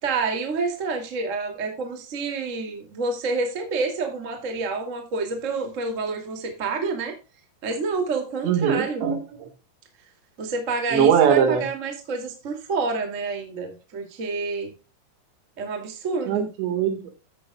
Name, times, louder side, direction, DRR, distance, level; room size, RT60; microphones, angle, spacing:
voice 1, 0.0-7.1 7.6-9.0 10.4-14.7 15.6-16.5, right 4 dB, 30° right, 4 dB, 1.5 m, -28 dB
voice 2, 8.4-9.5 10.9-11.6 16.3-17.1, right 8 dB, 70° right, 7 dB, 3.8 m, -21 dB
14.0 x 9.0 x 2.3 m, 0.30 s
omnidirectional pair, 5.4 m